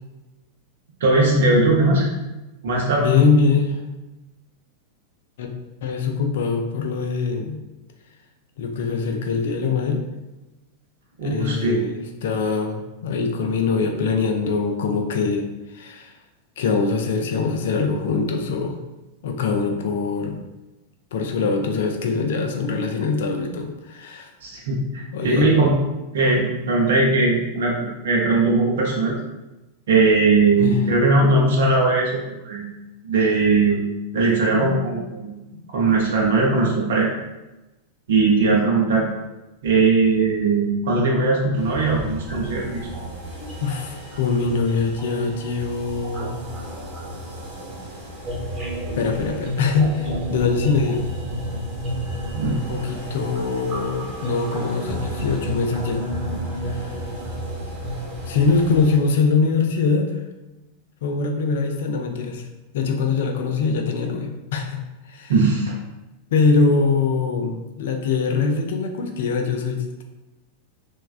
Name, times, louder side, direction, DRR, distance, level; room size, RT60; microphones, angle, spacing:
voice 1, 1.0-2.1 2.6-3.1 11.2-11.8 24.4-25.7 26.1-29.1 29.9-32.2 32.4-32.7 33.0-33.8 34.1-35.4 35.7-37.2 38.1-39.1 39.6-42.8 52.3-52.9 65.3-65.7, right 3 dB, 60° right, -2 dB, 0.6 m, -19 dB
voice 2, 3.0-3.8 5.4-5.5 5.8-7.6 8.6-10.1 11.2-15.5 15.7-16.1 16.6-18.8 19.2-20.4 21.1-24.3 25.1-25.5 30.6-30.8 34.5-34.9 35.5-35.6 43.4-46.4 48.9-51.1 52.4-56.0 56.6-57.1 58.3-60.2 61.0-62.5 62.7-65.3 66.3-70.0, left 4 dB, 55° left, 5 dB, 0.4 m, -23 dB
sound 1, 41.6-59.0, right 1 dB, 25° right, 0.8 m, -31 dB
3.1 x 2.2 x 2.4 m, 1.0 s
figure-of-eight pair, 90°, 0 cm